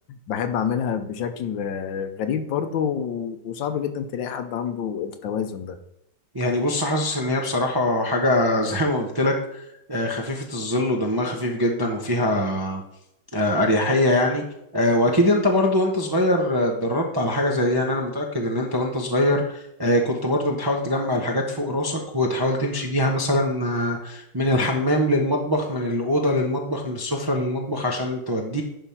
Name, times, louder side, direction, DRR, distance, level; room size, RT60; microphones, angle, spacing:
voice 1, 0.1-5.8, left 8 dB, 80° left, 9 dB, 1.5 m, -28 dB
voice 2, 6.3-9.6 9.9-12.8 13.3-14.4 14.7-28.6, left 1 dB, 25° right, 0 dB, 0.5 m, -23 dB
10.5 x 3.6 x 5.8 m, 0.84 s
omnidirectional pair, 2.1 m